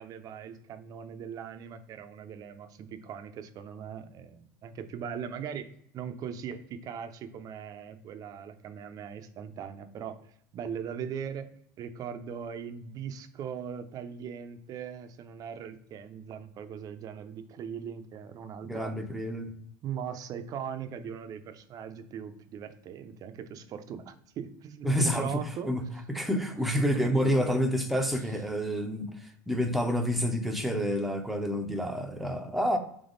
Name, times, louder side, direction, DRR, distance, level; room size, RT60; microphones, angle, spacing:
voice 1, 0.0-11.5 11.8-19.0 19.8-26.0 26.9-27.6 30.2-30.5, right 7 dB, 40° right, 9 dB, 0.6 m, -40 dB
voice 2, 18.6-19.5 24.8-25.3 25.6-25.8 26.1-32.8, equal, ahead, 5 dB, 0.7 m, -28 dB
3.5 x 3.4 x 3.9 m, 0.68 s
hypercardioid pair, 95°, 9 cm